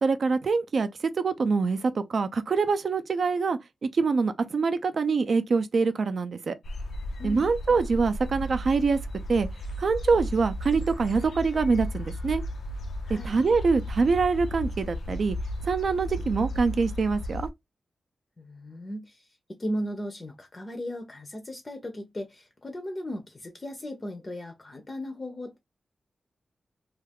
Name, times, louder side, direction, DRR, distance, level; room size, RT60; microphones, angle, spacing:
voice 1, 0.0-0.9 1.2-6.5 7.2-9.0 9.3-9.5 9.8-12.4 13.1-15.4 15.6-17.5, right 4 dB, 60° right, 0.4 m, -25 dB
sound 1, 6.6-17.5, equal, 85° left, 0.4 m, -34 dB
voice 2, 13.0-13.4 18.4-25.6, equal, 30° left, 0.5 m, -36 dB
2.4 x 2.3 x 3.3 m
wide cardioid pair, 115°, 0 cm